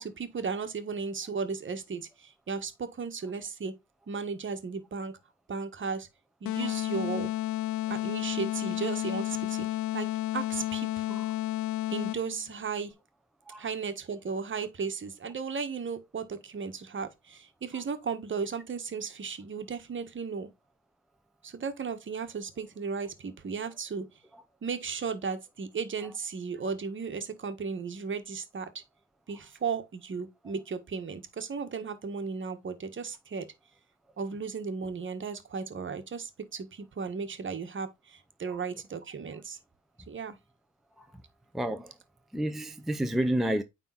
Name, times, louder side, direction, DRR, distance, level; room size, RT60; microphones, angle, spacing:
voice 1, 0.0-3.7 4.1-5.1 5.5-6.1 6.4-7.3 7.9-9.7 9.9-10.1 10.3-11.2 11.9-12.9 13.6-20.5 21.4-24.1 24.6-28.7 29.3-33.5 34.2-39.6 40.1-40.4, right 5 dB, 40° right, 1.5 m, -35 dB
sound 1, 6.4-12.4, left 14 dB, 75° left, 0.5 m, -31 dB
voice 2, 41.5-41.9 42.3-43.6, right 1 dB, ahead, 0.6 m, -29 dB
9.1 x 3.7 x 4.0 m
cardioid pair, 90°, 30 cm